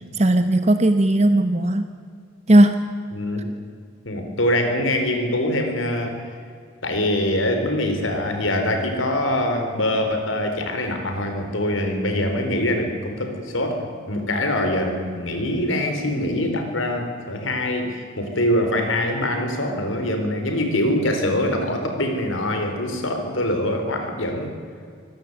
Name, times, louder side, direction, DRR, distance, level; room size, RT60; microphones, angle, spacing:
voice 1, 0.1-1.9 2.5-2.8, right 1 dB, 35° right, 8 dB, 1.0 m, -16 dB
voice 2, 3.1-3.5 4.0-6.2 6.8-24.5, left 1 dB, 90° left, 5 dB, 4.1 m, -24 dB
24.5 x 16.5 x 8.1 m, 2.2 s
head